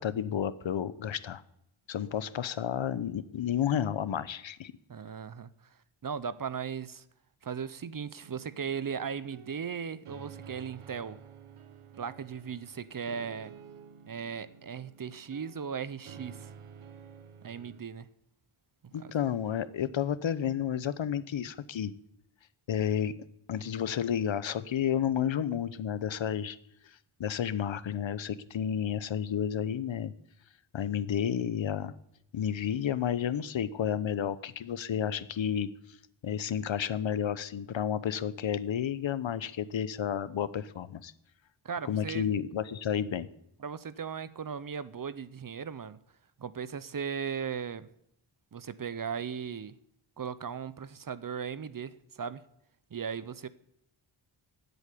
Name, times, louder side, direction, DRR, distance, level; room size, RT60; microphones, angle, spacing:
voice 1, 0.0-1.4 1.9-4.7 18.9-21.9 22.7-23.1 23.5-26.6 27.2-30.1 30.7-31.9 32.3-35.7 36.2-41.1 41.8-43.3, left 9 dB, 65° left, 0.9 m, -31 dB
voice 2, 4.9-5.5 6.0-7.0 7.4-11.2 12.0-13.6 14.1-16.5 17.4-18.1 18.8-19.1 41.6-42.3 43.6-46.0 46.4-47.9 48.5-49.7 50.2-52.4 52.9-53.5, right 6 dB, 45° right, 0.8 m, -37 dB
sound 1, 8.2-17.8, right 7 dB, 85° right, 1.1 m, -51 dB
16.5 x 8.2 x 9.9 m
wide cardioid pair, 135°, 49 cm